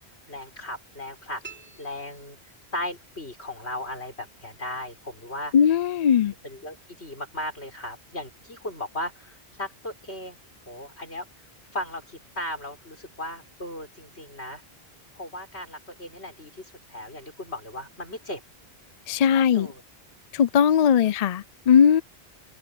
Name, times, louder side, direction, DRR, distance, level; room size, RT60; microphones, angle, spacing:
voice 1, 0.3-1.4 1.8-2.4 2.7-5.5 6.4-10.4 10.7-11.3 11.7-14.6 15.1-16.6 16.9-18.4 19.3-19.8 20.8-21.0, left 1 dB, 85° left, 6.4 m, -36 dB
sound 1, 1.4-3.0, right 5 dB, 10° right, 5.0 m, -48 dB
voice 2, 5.5-6.3 19.1-19.7 20.3-22.0, left 8 dB, 50° left, 0.5 m, -19 dB
open air
omnidirectional pair, 1.1 m